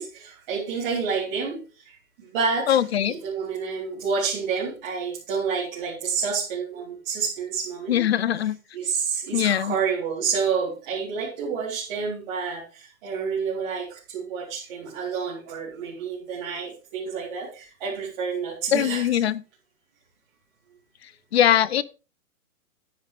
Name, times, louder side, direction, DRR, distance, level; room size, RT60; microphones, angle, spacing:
voice 1, 0.0-1.6 1.8-1.9 2.3-2.8 3.1-8.0 8.7-19.0, right 5 dB, 35° right, 3.9 m, -29 dB
voice 2, 2.7-3.2 7.9-8.6 9.3-9.8 18.7-19.4 21.0-21.8, left 10 dB, 50° left, 0.6 m, -22 dB
10.5 x 10.0 x 3.5 m
hypercardioid pair, 170°, 41 cm